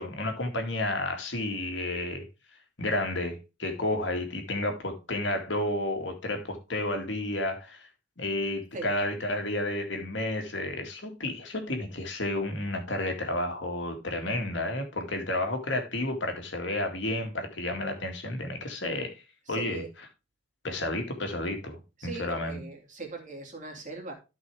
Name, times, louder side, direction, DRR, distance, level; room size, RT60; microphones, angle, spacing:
voice 1, 0.0-2.3 2.8-7.9 8.2-19.1 19.5-19.8 20.6-22.6, left 1 dB, 65° left, 2.2 m, -31 dB
voice 2, 19.5-19.9 22.0-24.1, right 3 dB, 40° right, 2.6 m, -40 dB
13.0 x 5.3 x 3.5 m
head